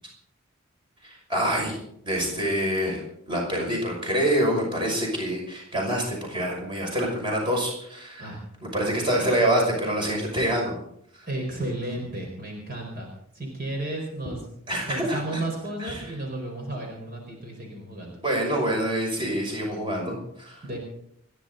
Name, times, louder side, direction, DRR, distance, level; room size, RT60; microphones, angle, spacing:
voice 1, 1.0-1.8 2.0-3.0 3.3-8.3 8.7-10.8 11.1-11.3 14.7-15.4 15.8-16.0 18.2-20.6, right 1 dB, 25° right, -1 dB, 5.8 m, -26 dB
voice 2, 11.3-13.1 13.3-14.4 14.9-18.2 20.6-20.8, right 1 dB, 45° right, 0 dB, 4.6 m, -33 dB
29.5 x 11.0 x 4.0 m, 0.70 s
head